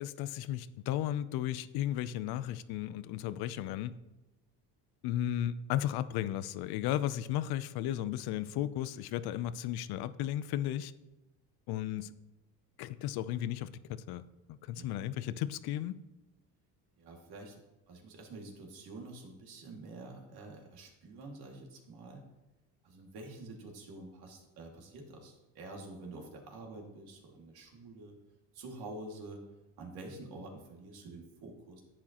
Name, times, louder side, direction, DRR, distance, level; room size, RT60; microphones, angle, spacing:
voice 1, 0.0-3.9 5.0-10.9 11.7-12.1 12.8-14.2 14.5-16.0, left 12 dB, 70° left, 15 dB, 0.6 m, -34 dB
voice 2, 14.7-15.2 17.0-17.6 17.9-22.2 22.8-28.1 28.5-29.4 29.8-31.8, right 2 dB, 70° right, 1 dB, 2.3 m, -48 dB
10.0 x 8.6 x 2.9 m, 1.0 s
cardioid pair, 115°, 39 cm